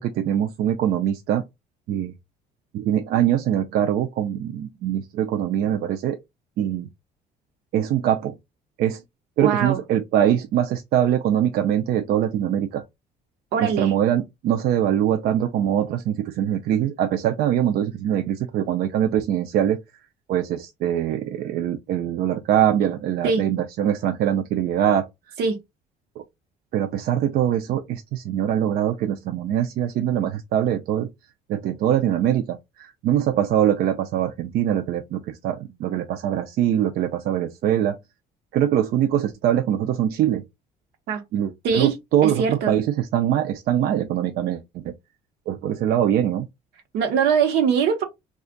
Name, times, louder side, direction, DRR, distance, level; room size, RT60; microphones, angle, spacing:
voice 1, 0.0-1.4 1.9-2.1 2.7-6.2 6.6-6.9 7.7-8.3 8.8-9.0 9.4-12.8 13.6-19.8 20.3-25.0 26.2-26.3 26.7-31.1 31.5-38.0 38.5-40.4 41.3-44.9 45.5-46.5, right 10 dB, 65° right, 0.4 m, -23 dB
voice 2, 9.4-9.8 13.5-13.9 23.2-23.4 25.4-25.6 41.1-41.2 41.6-41.9 42.2-42.8 46.9-48.0, right 6 dB, 85° right, 0.9 m, -22 dB
2.5 x 2.3 x 3.7 m
cardioid pair, 110°, 17 cm